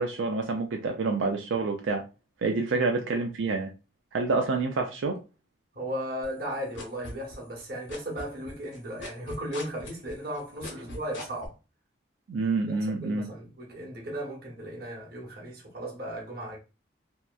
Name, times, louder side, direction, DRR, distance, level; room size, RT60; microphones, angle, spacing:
voice 1, 0.0-2.0 2.4-3.7 4.1-5.2 12.3-13.3, right 3 dB, 90° right, 0.4 m, -27 dB
voice 2, 5.7-11.5 12.7-16.6, equal, 55° right, 0.9 m, -36 dB
sound 1, 6.2-7.6 7.9-11.5, left 2 dB, 80° left, 0.9 m, -40 dB
2.8 x 2.2 x 2.3 m
head